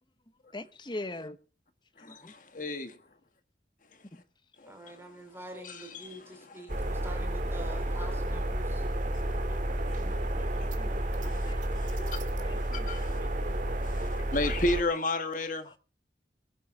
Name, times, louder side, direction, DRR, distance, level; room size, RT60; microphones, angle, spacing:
voice 1, 0.5-1.4 2.0-2.3 4.1-4.2 9.3-9.6 10.1-11.6 12.0-13.6 15.6-15.7, left 2 dB, 25° left, 1.0 m, -44 dB
voice 2, 2.0-2.9 4.6-4.7 5.6-6.2 6.7-6.8 8.0-8.1 9.1-9.2 11.2-12.2 12.7-13.2 13.8-15.7, left 2 dB, 45° left, 1.5 m, -33 dB
voice 3, 4.7-8.9, right 1 dB, 15° right, 3.7 m, -46 dB
sound 1, 6.7-14.8, right 1 dB, 45° right, 1.8 m, -31 dB
22.0 x 10.0 x 3.7 m
head